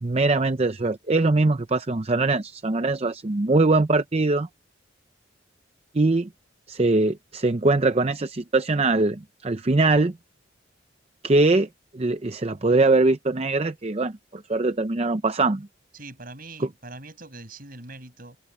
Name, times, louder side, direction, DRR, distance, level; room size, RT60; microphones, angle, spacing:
voice 1, 0.0-4.5 5.9-6.3 6.7-10.1 11.2-11.7 11.9-15.7 16.6-16.7, right 3 dB, 30° right, 0.6 m, -22 dB
voice 2, 15.9-18.4, right 2 dB, 50° right, 7.8 m, -42 dB
head